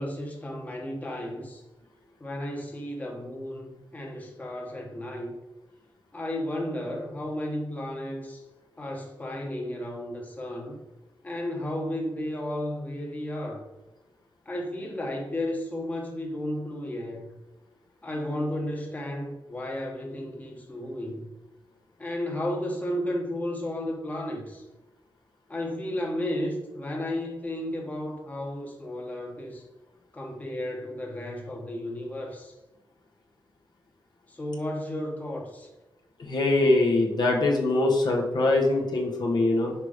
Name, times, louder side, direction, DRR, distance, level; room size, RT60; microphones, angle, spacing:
voice 1, 0.0-1.6 2.2-5.4 6.1-8.4 8.8-10.8 11.2-13.6 14.5-17.3 18.0-21.3 22.0-24.6 25.5-29.6 30.1-32.5 34.3-35.7, left 1 dB, 20° left, -1 dB, 1.2 m, -33 dB
voice 2, 36.2-39.7, left 2 dB, 55° left, 0 dB, 1.1 m, -23 dB
5.8 x 4.9 x 5.0 m, 1.1 s
wide cardioid pair, 175°, 9 cm